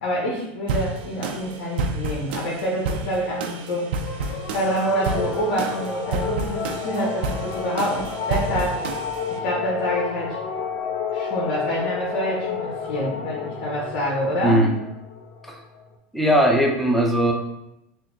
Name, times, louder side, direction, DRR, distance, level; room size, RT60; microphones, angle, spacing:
voice 1, 0.0-3.9 4.5-8.8 9.3-10.4 11.1-14.6, equal, 75° left, -4 dB, 1.0 m, -26 dB
sound 1, 0.7-9.4, right 3 dB, 75° right, 0.5 m, -30 dB
sound 2, 4.0-15.9, left 6 dB, 50° left, 0.5 m, -31 dB
voice 2, 14.4-14.7 15.4-15.6 16.1-17.3, right 1 dB, ahead, 0 dB, 0.7 m, -19 dB
4.0 x 2.1 x 3.8 m, 0.87 s
supercardioid pair, 120°, 5 cm